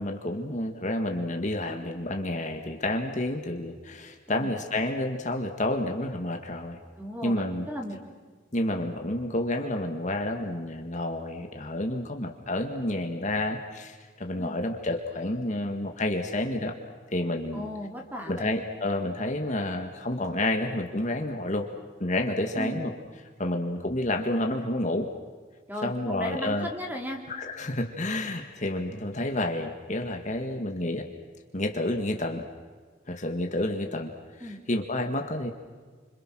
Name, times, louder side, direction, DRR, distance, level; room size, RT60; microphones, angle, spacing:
voice 1, 0.0-6.8 7.2-7.7 8.5-16.7 17.1-17.7 18.3-21.7 22.0-22.9 23.4-25.1 25.8-26.7 27.3-31.1 31.5-32.4 33.1-34.1 34.4-35.5, left 1 dB, 40° left, 3 dB, 1.9 m, -29 dB
voice 2, 7.0-8.0 14.4-14.6 17.5-18.5 22.5-22.8 25.7-27.2 34.4-34.6, equal, 10° right, 1 dB, 3.7 m, -36 dB
30.0 x 26.5 x 6.3 m, 1.5 s
head